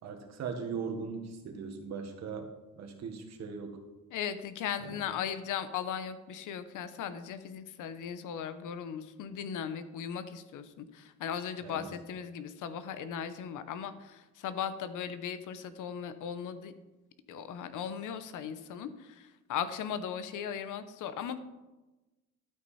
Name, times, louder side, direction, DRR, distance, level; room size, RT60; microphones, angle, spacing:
voice 1, 0.0-2.5 2.8-3.8 4.8-5.0 11.6-11.9, right 5 dB, 60° right, 4 dB, 1.6 m, -39 dB
voice 2, 4.1-16.7 17.3-21.4, left 8 dB, 80° left, 12 dB, 0.9 m, -38 dB
12.0 x 8.7 x 4.2 m, 1.1 s
cardioid pair, 170°, 30 cm